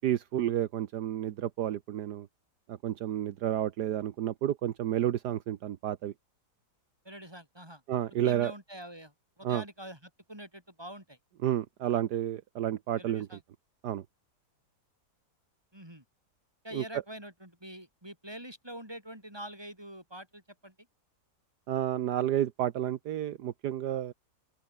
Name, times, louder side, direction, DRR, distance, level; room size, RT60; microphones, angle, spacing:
voice 1, 0.0-2.3 2.7-6.1 7.9-8.5 9.4-9.6 11.4-13.3 13.8-14.0 16.7-16.8 21.7-24.1, right 11 dB, 75° right, 1.5 m, -31 dB
voice 2, 7.0-7.8 8.2-11.2 13.0-13.4 15.7-16.0 16.6-20.7, right 1 dB, 15° right, 6.8 m, -45 dB
open air
omnidirectional pair, 1.8 m